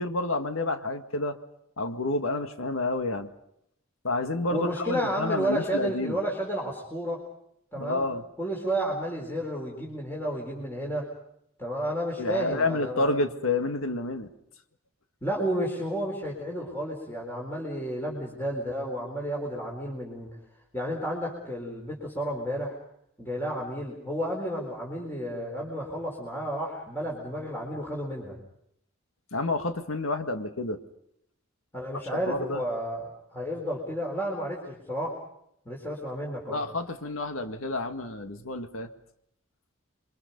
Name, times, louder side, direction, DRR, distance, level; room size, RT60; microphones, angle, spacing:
voice 1, 0.0-1.4 1.8-3.3 4.0-6.2 7.8-8.2 12.2-14.3 29.3-30.8 32.3-32.6 36.5-38.9, left 2 dB, 80° left, 7 dB, 1.9 m, -29 dB
voice 2, 4.5-7.2 7.7-8.0 8.4-11.1 11.6-13.1 15.2-20.4 20.7-22.7 23.2-28.4 31.7-35.2 35.7-36.6, equal, 10° left, -2 dB, 4.3 m, -31 dB
28.0 x 24.0 x 5.4 m, 0.74 s
head